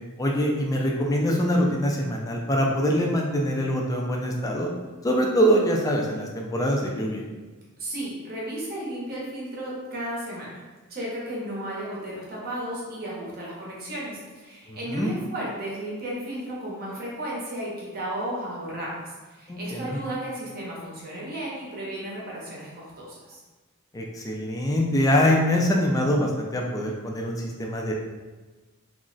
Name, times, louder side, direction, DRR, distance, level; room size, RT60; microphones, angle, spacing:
voice 1, 0.2-4.7 5.0-7.2 14.7-15.2 19.5-20.0 23.9-27.9, equal, 15° left, 0 dB, 0.3 m, -24 dB
voice 2, 7.8-10.5 10.9-23.4, right 1 dB, 40° right, -5 dB, 0.7 m, -34 dB
2.4 x 2.1 x 3.8 m, 1.3 s
head